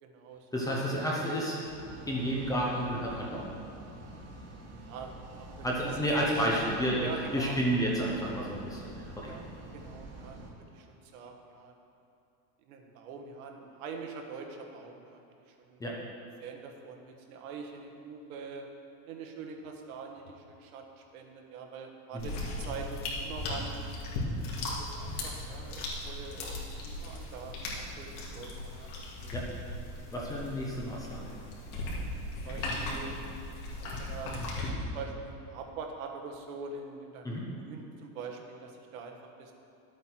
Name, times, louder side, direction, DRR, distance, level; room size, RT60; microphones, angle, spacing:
voice 1, 0.0-0.8 4.9-5.9 6.2-6.6 7.0-7.6 9.2-9.4 9.7-10.4 10.7-11.8 12.6-15.8 16.4-18.7 19.0-23.9 24.7-28.9 29.2-29.3 30.0-30.4 31.7-32.0 32.3-33.1 33.8-37.3 37.5-39.5, right 5 dB, 70° right, 3 dB, 1.4 m, -44 dB
voice 2, 0.5-3.5 5.6-9.3 15.8-16.0 22.1-22.3 29.3-29.5 30.1-31.3 37.2-37.5, equal, 10° left, -4 dB, 0.7 m, -31 dB
sound 1, 1.6-10.5, right 2 dB, 35° right, 1.4 m, -47 dB
sound 2, 22.2-34.7, left 2 dB, 75° left, 2.5 m, -37 dB
11.0 x 8.2 x 4.4 m, 2.8 s
supercardioid pair, 170°, 44 cm